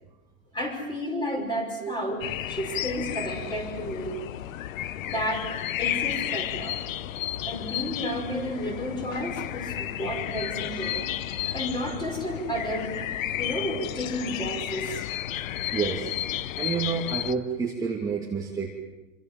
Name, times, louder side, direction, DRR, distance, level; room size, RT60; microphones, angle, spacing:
voice 1, 0.5-4.5 5.0-5.5 5.8-6.8 7.5-11.1 11.5-13.0 13.4-15.1, equal, 10° left, 4 dB, 5.6 m, -32 dB
sound 1, 2.2-17.3, left 12 dB, 75° left, 1.1 m, -32 dB
voice 2, 15.7-18.7, right 5 dB, 10° right, -2 dB, 2.5 m, -29 dB
27.0 x 25.5 x 7.7 m, 1.0 s
supercardioid pair, 155°, 40 cm